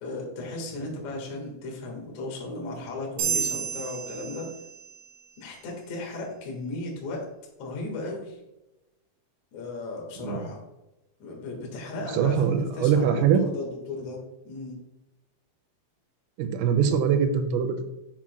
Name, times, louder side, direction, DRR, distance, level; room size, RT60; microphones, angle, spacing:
voice 1, 0.0-4.5 5.4-7.2 7.6-8.4 9.5-10.6 11.2-14.8, left 2 dB, 75° left, -1 dB, 1.6 m, -35 dB
sound 1, 3.2-5.1, right 7 dB, 70° right, 2.8 m, -31 dB
voice 2, 12.0-13.4 16.4-17.9, right 7 dB, 85° right, 7 dB, 3.2 m, -23 dB
7.5 x 7.1 x 2.2 m, 0.95 s
omnidirectional pair, 5.9 m